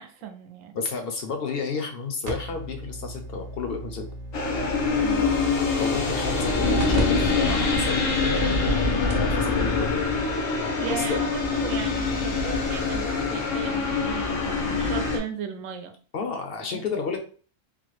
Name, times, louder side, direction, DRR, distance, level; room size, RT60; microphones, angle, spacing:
voice 1, 0.0-0.8 5.0-5.2 10.8-15.9 16.7-16.8, right 7 dB, 80° right, 6 dB, 1.0 m, -36 dB
voice 2, 0.7-4.0 5.8-8.8 9.1-10.0 10.9-11.2 16.1-17.2, left 4 dB, 60° left, 4 dB, 0.7 m, -31 dB
sound 1, 2.2-7.0 7.4-7.5 8.1-8.2 8.8-8.9 9.1-9.4 10.6-10.7, right 2 dB, 55° right, 0.9 m, -35 dB
Creepy Ambient Sound, 4.3-15.2, left 4 dB, 85° left, 1.1 m, -24 dB
3.5 x 2.0 x 3.1 m, 0.40 s
omnidirectional pair, 1.3 m